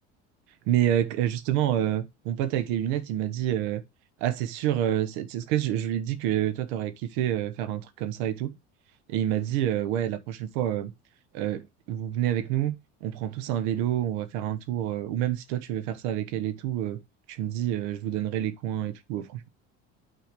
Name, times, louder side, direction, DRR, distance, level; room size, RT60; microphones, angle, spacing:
voice 1, 0.7-3.8 4.2-8.5 9.1-10.9 11.3-12.8 13.0-17.0 17.3-19.5, right 11 dB, 80° right, 1.1 m, -28 dB
6.2 x 4.9 x 5.1 m
supercardioid pair, 95°, 34 cm